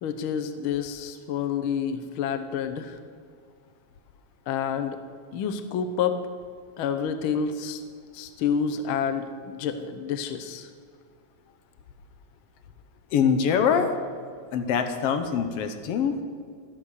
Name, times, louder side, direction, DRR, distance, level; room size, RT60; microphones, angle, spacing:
voice 1, 0.0-3.0 4.5-5.0 5.3-6.2 6.8-7.8 8.1-10.7, left 7 dB, 85° left, 9 dB, 1.1 m, -28 dB
voice 2, 13.1-13.9 14.5-16.2, left 7 dB, 65° left, 7 dB, 1.7 m, -23 dB
12.5 x 12.5 x 6.6 m, 2.1 s
omnidirectional pair, 3.5 m